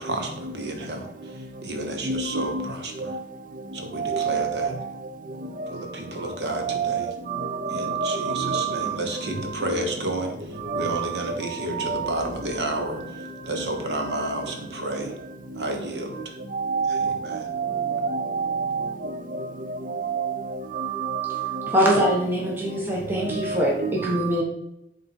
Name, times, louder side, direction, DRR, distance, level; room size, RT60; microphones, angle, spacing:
voice 1, 0.0-3.1 3.7-4.7 5.7-7.1 7.7-15.1 15.6-16.3 16.9-17.5, right 1 dB, 75° right, 1.2 m, -31 dB
voice 2, 2.1-2.6 4.0-4.5 6.6-7.0 7.9-8.9 10.7-11.0 16.5-17.2 17.5-18.9 20.0-20.3 20.8-21.5 23.6-23.9, right 6 dB, 50° right, 0.6 m, -26 dB
voice 3, 21.7-24.4, equal, 10° right, 1.2 m, -23 dB
7.5 x 4.0 x 4.4 m
head